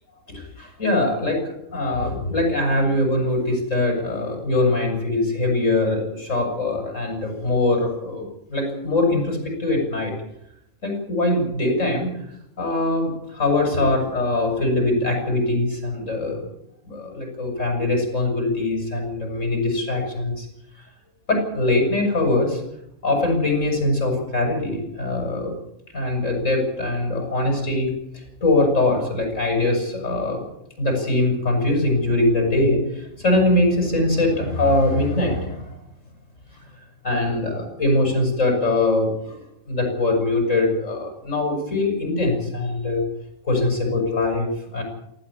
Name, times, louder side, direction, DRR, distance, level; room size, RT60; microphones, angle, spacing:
voice 1, 0.3-8.2 8.5-10.1 10.8-12.1 12.6-16.4 16.9-20.5 21.3-22.6 23.0-25.5 25.9-27.9 28.4-30.4 30.8-35.7 37.0-39.4 39.7-43.1 43.4-44.8, left 2 dB, 75° left, 1 dB, 7.5 m, -22 dB
19.5 x 16.0 x 8.8 m, 0.79 s
omnidirectional pair, 1.3 m